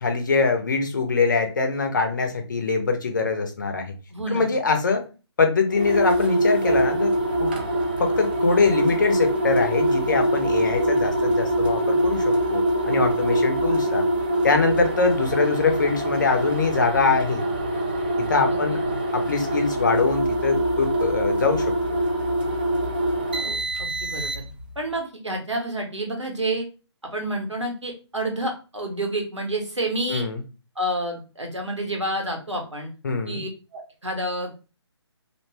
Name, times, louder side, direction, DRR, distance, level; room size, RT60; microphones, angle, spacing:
voice 1, 0.0-3.9 4.3-5.0 5.4-7.1 7.4-7.5 8.0-12.2 12.5-14.1 14.4-17.4 18.3-18.8 19.1-21.7 30.1-30.4 33.0-33.4, left 4 dB, 40° left, 5 dB, 0.5 m, -23 dB
voice 2, 4.1-4.6 18.5-19.0 23.8-24.5 24.8-26.7 27.1-30.3 30.8-32.9 33.3-34.5, right 1 dB, 85° right, 2 dB, 1.0 m, -29 dB
sound 1, 5.7-24.7, right 1 dB, 20° right, 0.3 m, -24 dB
2.5 x 2.2 x 3.2 m, 0.33 s
figure-of-eight pair, 145°, 15 cm